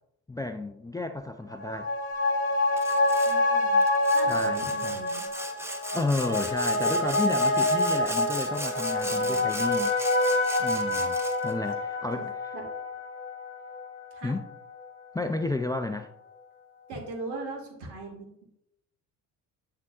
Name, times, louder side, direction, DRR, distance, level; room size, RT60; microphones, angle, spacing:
voice 1, 0.3-1.9 4.2-5.0 5.9-9.9 10.6-11.2 11.4-12.3 14.2-14.5 15.1-16.1, left 2 dB, 10° left, 0.4 m, -32 dB
sound 1, 1.5-14.4 14.7-14.8, left 2 dB, 35° left, 1.5 m, -27 dB
Sawing, 2.8-3.4 3.8-11.5, right 1 dB, 5° right, 0.8 m, -39 dB
voice 2, 3.3-3.8 4.1-5.3 9.1-9.5 12.2-12.3 12.5-12.6 14.1-14.4 16.9-18.4, right 2 dB, 70° right, 2.0 m, -40 dB
10.5 x 3.8 x 2.5 m
hypercardioid pair, 55°, 41 cm